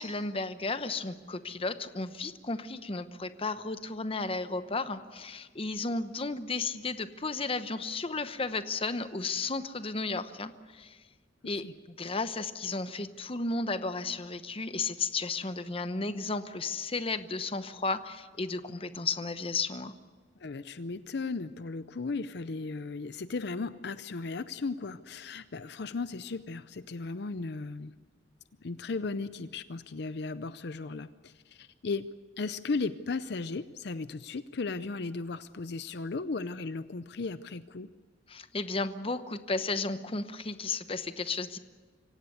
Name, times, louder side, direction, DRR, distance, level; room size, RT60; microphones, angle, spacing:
voice 1, 0.0-11.0 11.4-19.9 38.3-41.6, left 3 dB, 30° left, 11 dB, 0.9 m, -34 dB
voice 2, 20.4-27.9 28.6-32.1 32.4-37.9, left 3 dB, 65° left, 14 dB, 0.6 m, -36 dB
25.5 x 17.0 x 8.1 m, 1.5 s
head